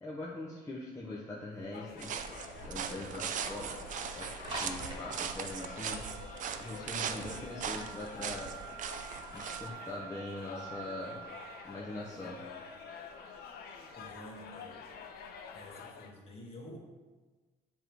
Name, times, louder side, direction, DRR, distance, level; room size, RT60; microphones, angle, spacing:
voice 1, 0.0-2.1 2.7-3.7 4.2-4.3 4.6-6.0 6.6-8.5 9.3-11.2 11.6-12.4, left 2 dB, 15° left, -6 dB, 0.9 m, -42 dB
sound 1, 1.5-15.7, right 4 dB, 25° right, 1.6 m, -49 dB
sound 2, 1.7-16.1, left 6 dB, 70° left, 0.6 m, -48 dB
sound 3, 2.0-9.7, right 7 dB, 50° right, 0.5 m, -39 dB
voice 2, 7.0-7.4 13.9-14.8 15.5-16.8, left 1 dB, 35° left, -2 dB, 1.6 m, -49 dB
7.3 x 3.1 x 5.1 m, 1.3 s
cardioid pair, 110°, 17 cm